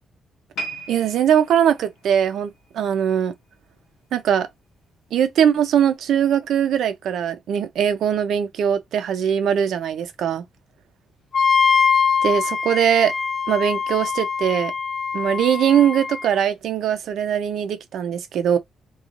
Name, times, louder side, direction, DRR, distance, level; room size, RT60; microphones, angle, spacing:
sound 1, 0.5-3.8 4.1-4.4 5.1-5.2, right 1 dB, 85° left, 0.9 m, -38 dB
voice 1, 0.9-3.3 4.1-4.5 5.1-10.4 12.2-13.1 13.5-14.7 15.1-18.6, right 9 dB, 75° right, 0.5 m, -21 dB
Wind instrument woodwind instrument, 11.3-16.3, left 6 dB, 50° left, 0.5 m, -22 dB
2.5 x 2.4 x 2.9 m
cardioid pair, 125°, 0 cm